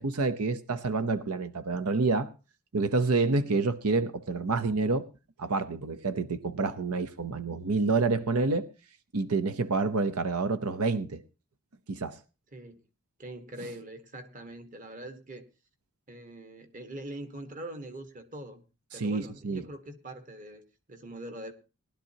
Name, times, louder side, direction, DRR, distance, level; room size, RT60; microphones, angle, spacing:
voice 1, 0.0-2.3 2.7-5.1 5.4-8.7 9.1-11.2 11.9-12.2 18.9-19.6, right 3 dB, 85° right, 0.8 m, -28 dB
voice 2, 12.5-12.8 13.2-15.5 16.1-18.6 18.9-20.6 20.9-21.5, right 1 dB, 35° right, 1.4 m, -43 dB
19.0 x 12.0 x 2.8 m
head